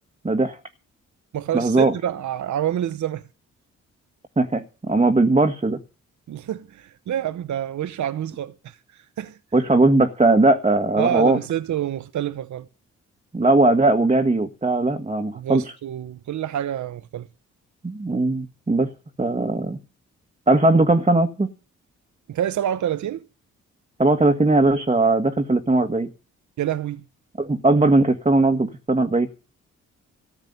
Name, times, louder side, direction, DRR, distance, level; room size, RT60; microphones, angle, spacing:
voice 1, 0.2-0.6 1.5-1.9 4.4-5.8 9.5-11.4 13.3-15.6 17.8-18.9 19.2-19.8 20.5-21.5 24.0-26.1 27.4-29.3, right 2 dB, 20° right, 1.7 m, -19 dB
voice 2, 1.3-3.2 6.3-9.4 11.0-12.7 15.3-17.3 22.3-23.2 26.6-27.0, right 11 dB, 65° right, 0.9 m, -27 dB
14.0 x 7.2 x 9.5 m
cardioid pair, 65°, 31 cm